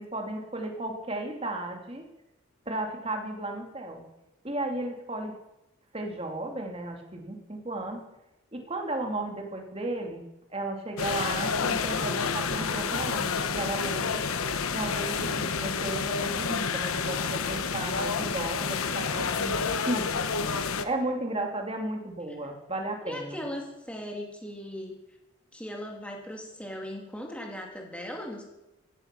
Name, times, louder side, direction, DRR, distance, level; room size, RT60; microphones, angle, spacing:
voice 1, 0.0-2.1 2.7-4.0 4.4-5.4 5.9-8.1 8.5-10.2 10.5-14.2 14.7-23.5, right 2 dB, 25° right, 3 dB, 2.4 m, -34 dB
sound 1, 11.0-20.9, left 5 dB, 85° left, 1.1 m, -29 dB
voice 2, 23.0-25.0 25.5-28.4, equal, 5° left, 0 dB, 3.0 m, -38 dB
16.0 x 14.0 x 6.0 m, 0.95 s
head